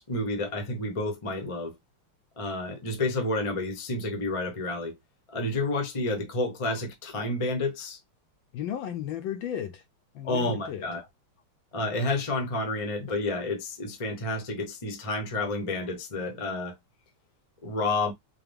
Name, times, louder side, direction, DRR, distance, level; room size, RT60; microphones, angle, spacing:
voice 1, 0.0-1.7 2.4-4.9 5.3-8.0 10.2-11.0 11.7-16.7 17.6-18.1, left 2 dB, 35° left, 0.5 m, -30 dB
voice 2, 8.5-9.8 10.1-10.9, left 10 dB, 75° left, 1.2 m, -34 dB
4.8 x 2.2 x 3.4 m
omnidirectional pair, 2.4 m